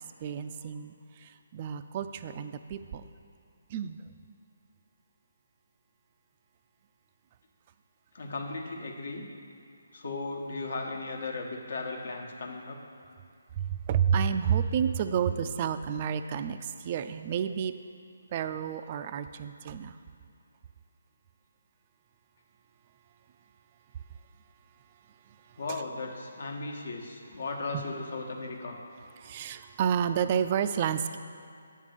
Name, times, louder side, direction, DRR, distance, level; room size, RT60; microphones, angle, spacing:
voice 1, 0.2-0.9 1.2-3.0 3.7-4.0 13.6-17.7 18.3-20.0 27.7-27.8 29.2-31.2, right 8 dB, 35° right, 10 dB, 0.3 m, -30 dB
voice 2, 8.1-9.2 9.9-12.8 25.6-28.8, left 3 dB, 65° left, 1 dB, 1.1 m, -36 dB
8.4 x 3.6 x 6.5 m, 2.5 s
figure-of-eight pair, 150°, 0 cm